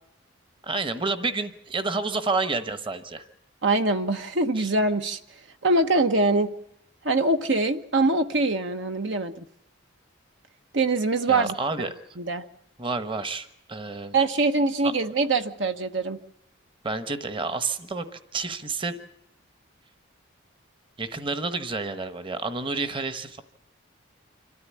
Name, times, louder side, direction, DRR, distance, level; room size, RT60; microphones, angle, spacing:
voice 1, 0.6-3.2 4.6-4.7 11.3-11.9 12.8-14.1 14.8-14.9 16.8-19.1 21.0-23.4, right 3 dB, 25° right, 10 dB, 1.2 m, -29 dB
voice 2, 3.6-5.2 5.6-6.5 7.0-9.4 10.7-11.5 12.2-12.4 14.1-16.2, right 2 dB, 60° right, 7 dB, 1.1 m, -23 dB
26.5 x 14.0 x 8.5 m, 0.83 s
head